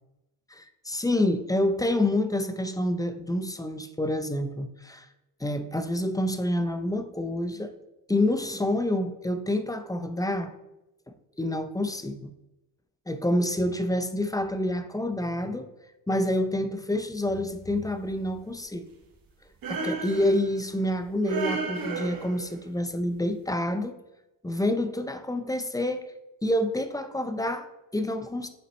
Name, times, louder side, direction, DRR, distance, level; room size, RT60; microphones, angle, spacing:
voice 1, 0.5-5.1 5.4-7.7 8.1-10.5 11.4-12.3 13.1-15.7 16.1-18.9 19.7-24.0 24.4-26.1 26.4-28.5, left 1 dB, 10° left, 9 dB, 0.5 m, -28 dB
sound 1, 19.6-20.7 21.2-22.6, right 3 dB, 45° right, 1.3 m, -32 dB
7.5 x 4.0 x 4.1 m, 0.95 s
cardioid pair, 90°, 46 cm